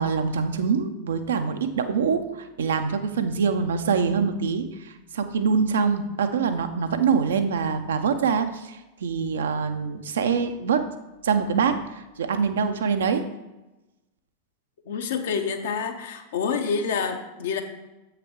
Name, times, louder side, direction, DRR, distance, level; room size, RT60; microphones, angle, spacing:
voice 1, 0.0-10.9 11.2-13.2, right 5 dB, 65° right, 8 dB, 0.6 m, -24 dB
voice 2, 14.9-17.6, left 5 dB, 60° left, 6 dB, 0.8 m, -27 dB
7.6 x 5.6 x 3.7 m, 1.0 s
figure-of-eight pair, 90°, 0 cm